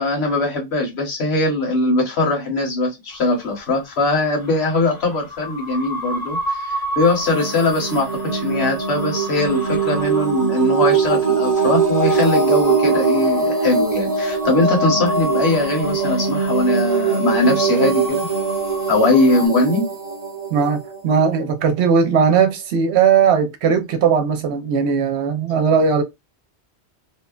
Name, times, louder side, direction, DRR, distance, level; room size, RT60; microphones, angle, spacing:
voice 1, 0.0-18.2 18.9-19.8, left 2 dB, 65° left, 1.3 m, -20 dB
sound 1, 3.1-19.5, right 1 dB, 45° left, 0.8 m, -33 dB
sound 2, 7.0-21.7, right 5 dB, 35° right, 0.6 m, -21 dB
voice 2, 20.5-26.0, right 6 dB, 70° right, 0.8 m, -18 dB
2.8 x 2.1 x 2.3 m
omnidirectional pair, 1.2 m